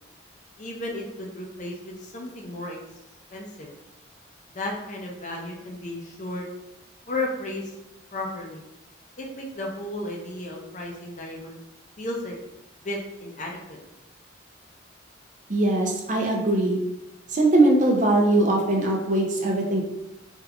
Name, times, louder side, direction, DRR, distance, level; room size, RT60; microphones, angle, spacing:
voice 1, 0.6-2.8 3.3-3.7 4.5-6.5 7.1-7.7 8.1-8.6 9.2-11.6 12.0-12.4 12.8-13.8, left 2 dB, 40° left, 0 dB, 0.5 m, -34 dB
voice 2, 15.5-16.8 17.3-19.8, right 2 dB, 40° right, 0 dB, 0.5 m, -21 dB
3.5 x 2.8 x 2.3 m, 0.92 s
head